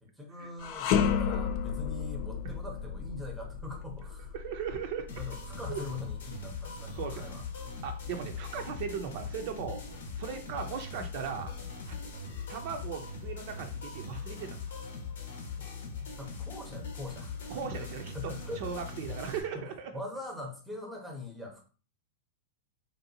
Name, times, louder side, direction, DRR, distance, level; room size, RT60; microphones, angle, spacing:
voice 1, 0.0-4.4 5.2-7.4 11.5-11.7 16.2-17.5 17.8-17.9 18.1-18.8 19.5-21.6, left 2 dB, ahead, 1 dB, 0.7 m, -42 dB
sound 1, 0.6-9.8 10.3-10.4 11.3-12.2, left 7 dB, 50° left, 0.4 m, -34 dB
voice 2, 4.3-5.1 5.5-5.8 6.9-7.2 7.8-9.8 10.2-11.5 11.9-12.0 12.5-14.6 17.5-19.9, right 7 dB, 55° right, 5 dB, 0.5 m, -38 dB
sound 2, 5.1-19.4, left 4 dB, 85° left, 0.8 m, -41 dB
3.5 x 2.6 x 2.7 m, 0.37 s
supercardioid pair, 140°, 0 cm